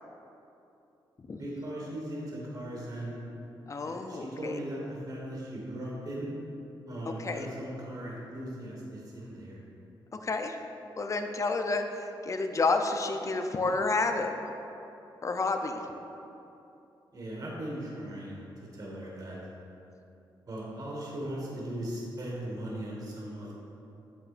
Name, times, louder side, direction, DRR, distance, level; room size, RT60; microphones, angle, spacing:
voice 1, 1.4-3.2 3.8-6.3 6.9-9.6 17.1-18.4 18.7-19.4 20.5-23.5, right 1 dB, 45° right, -4 dB, 1.6 m, -38 dB
voice 2, 3.7-4.6 7.1-7.5 10.2-10.6 11.0-14.3 15.2-15.8, left 3 dB, 35° left, 5 dB, 0.5 m, -30 dB
7.8 x 7.5 x 2.5 m, 2.9 s
cardioid pair, 90°, 9 cm